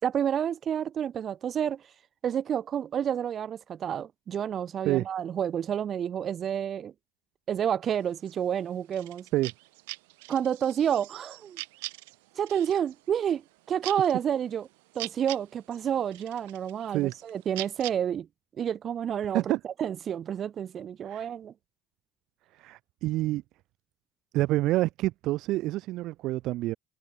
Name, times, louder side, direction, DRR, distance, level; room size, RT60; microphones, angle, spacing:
voice 1, 0.0-1.9 2.2-6.9 7.5-9.3 10.3-11.6 12.3-14.7 14.9-18.3 18.6-21.5, right 9 dB, 45° right, 4.9 m, -29 dB
sound 1, 7.9-17.9, right 25 dB, 80° right, 7.8 m, -43 dB
voice 2, 22.6-23.4 24.3-26.7, right 17 dB, 65° right, 3.0 m, -27 dB
hypercardioid pair, 75°, 0 cm